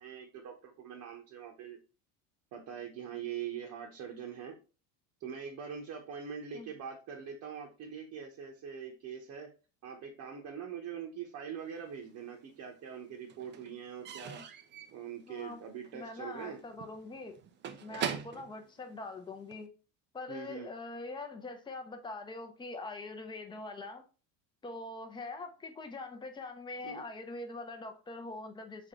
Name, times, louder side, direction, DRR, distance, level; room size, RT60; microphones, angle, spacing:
voice 1, 0.0-1.8 2.5-4.6 5.2-9.5 9.8-14.4 14.9-16.6 20.3-20.7 26.8-27.0, right 7 dB, 45° right, 1.0 m, -43 dB
Slam / Squeak / Wood, 11.8-12.6 12.9-19.7, right 8 dB, 30° right, 0.4 m, -43 dB
voice 2, 15.3-15.6 15.9-17.4 17.8-19.7 20.1-24.0 24.6-28.9, left 3 dB, 10° left, 0.7 m, -43 dB
3.6 x 3.5 x 3.7 m
supercardioid pair, 115°, 40 cm